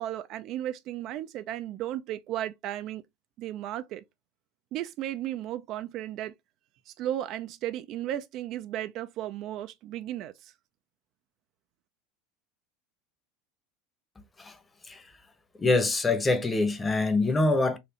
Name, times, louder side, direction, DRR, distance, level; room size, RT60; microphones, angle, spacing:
voice 1, 0.0-3.0 3.4-4.0 4.7-6.3 6.9-10.5, right 12 dB, 50° right, 0.4 m, -35 dB
voice 2, 15.6-17.8, left 2 dB, 20° left, 0.9 m, -24 dB
4.2 x 2.6 x 2.8 m
hypercardioid pair, 85°, 0 cm